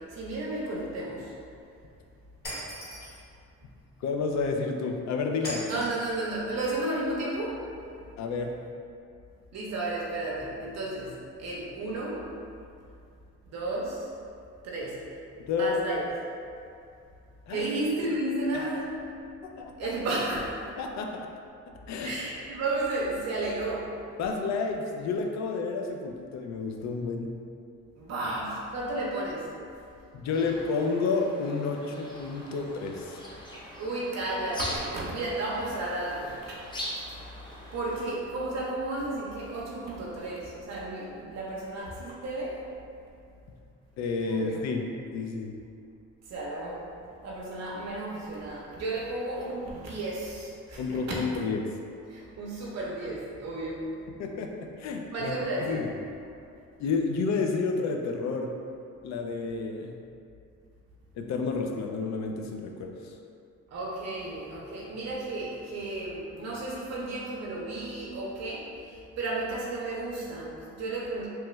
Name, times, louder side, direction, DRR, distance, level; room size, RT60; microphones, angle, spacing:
voice 1, 0.1-1.3 5.7-7.6 9.5-12.2 13.5-14.0 14.6-15.0 15.6-16.0 17.5-18.9 19.8-20.5 22.0-23.9 28.0-29.5 33.8-36.5 37.7-42.6 44.3-44.6 46.3-46.8 47.2-51.0 52.1-53.9 55.1-55.8 63.7-71.3, right 2 dB, 60° right, -5 dB, 0.6 m, -33 dB
Shatter, 2.4-3.2 5.4-6.2, equal, 30° left, 1.3 m, -38 dB
voice 2, 4.0-5.6 8.2-8.6 15.4-15.8 17.5-17.7 18.5-18.7 19.4-19.9 20.8-21.3 21.9-22.2 24.2-27.3 30.1-33.2 44.0-44.9 45.1-45.6 50.8-51.6 54.2-55.4 55.7-55.9 56.8-58.5 59.0-59.9 61.2-63.2, left 4 dB, 65° left, 2 dB, 0.4 m, -30 dB
sound 1, 30.3-38.1, equal, 15° left, 0.6 m, -42 dB
3.0 x 2.2 x 3.0 m, 2.5 s
cardioid pair, 90°, 30 cm